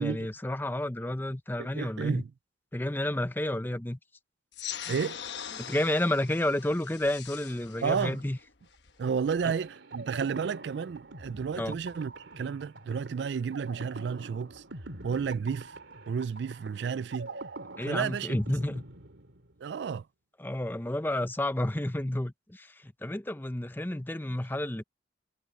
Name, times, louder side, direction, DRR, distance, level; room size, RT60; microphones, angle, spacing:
voice 1, 0.0-2.2 2.7-4.0 4.9-5.0 5.5-8.4 9.4-9.5 11.6-11.8 17.8-18.8 20.4-24.8, left 1 dB, 10° left, 0.6 m, -31 dB
voice 2, 1.6-2.3 4.9-5.2 7.8-8.2 9.0-14.6 15.0-15.7 16.1-17.3 17.9-18.4 19.6-20.0, right 6 dB, 70° right, 0.3 m, -32 dB
sound 1, 4.5-9.5, left 9 dB, 70° left, 1.1 m, -42 dB
sound 2, 9.0-19.7, right 2 dB, 90° right, 3.1 m, -45 dB
head